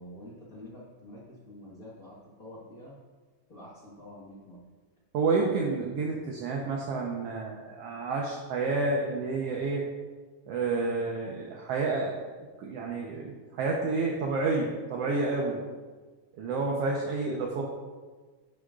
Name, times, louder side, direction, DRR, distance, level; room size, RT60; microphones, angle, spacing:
voice 1, 0.0-3.0 3.5-4.6, left 1 dB, 45° left, -6 dB, 1.2 m, -47 dB
voice 2, 5.1-9.9 10.5-15.6 16.3-17.6, right 3 dB, 70° right, -1 dB, 1.5 m, -30 dB
10.0 x 10.0 x 2.4 m, 1.4 s
omnidirectional pair, 3.6 m